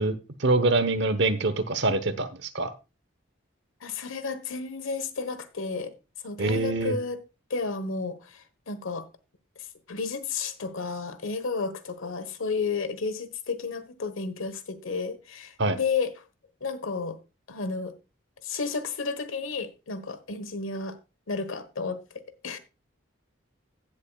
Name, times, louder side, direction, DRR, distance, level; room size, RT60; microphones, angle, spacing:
voice 1, 0.0-2.7 6.4-7.0 15.6-15.8, right 2 dB, 60° right, 1.0 m, -25 dB
voice 2, 3.8-5.9 6.2-7.2 7.5-9.1 9.9-16.1 16.6-17.2 17.5-17.9 18.4-21.0 21.3-22.6, left 4 dB, 85° left, 1.2 m, -32 dB
16.0 x 7.3 x 2.3 m
head